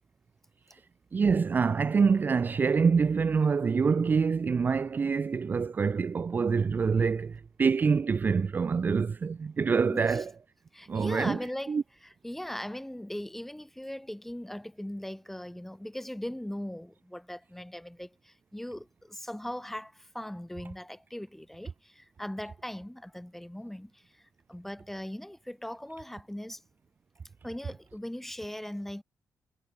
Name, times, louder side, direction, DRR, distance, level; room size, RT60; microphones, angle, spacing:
voice 1, 1.1-10.3 10.9-11.4 11.7-11.8, right 5 dB, 35° right, 0.5 m, -26 dB
voice 2, 9.9-10.3 10.7-26.6 27.4-29.0, left 1 dB, 5° left, 5.5 m, -39 dB
wide cardioid pair, 135°, 6 cm